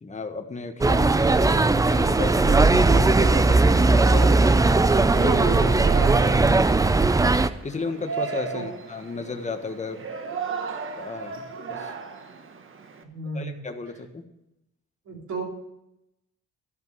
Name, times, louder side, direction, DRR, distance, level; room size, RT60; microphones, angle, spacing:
voice 1, 0.0-4.6 5.0-5.3 7.6-10.0 11.0-11.4 11.7-11.9 13.3-14.3, left 3 dB, 25° left, 5 dB, 1.4 m, -33 dB
sound 1, 0.8-7.5, right 3 dB, 10° right, 0.4 m, -18 dB
voice 2, 5.1-6.3 8.5-8.6 13.0-13.6 15.1-15.4, right 3 dB, 70° right, -2 dB, 3.5 m, -31 dB
Yell, 5.3-13.0, right 6 dB, 45° right, 1.3 m, -35 dB
13.5 x 5.3 x 7.7 m, 0.86 s
cardioid pair, 90°, 30 cm